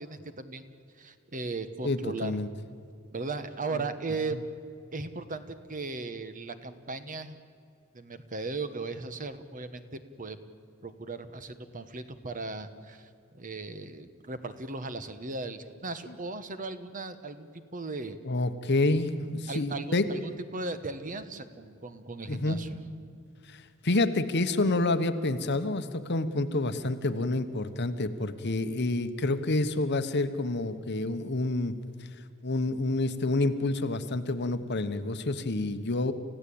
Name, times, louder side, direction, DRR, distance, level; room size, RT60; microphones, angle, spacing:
voice 1, 0.0-2.4 3.1-4.4 4.9-7.4 7.9-10.4 10.8-18.2 19.5-22.8, right 3 dB, 40° right, 10 dB, 1.2 m, -37 dB
voice 2, 1.8-2.5 18.2-20.1 22.3-22.6 23.5-31.7 32.4-36.1, left 2 dB, 50° left, 10 dB, 1.1 m, -28 dB
29.5 x 15.5 x 8.6 m, 2.3 s
head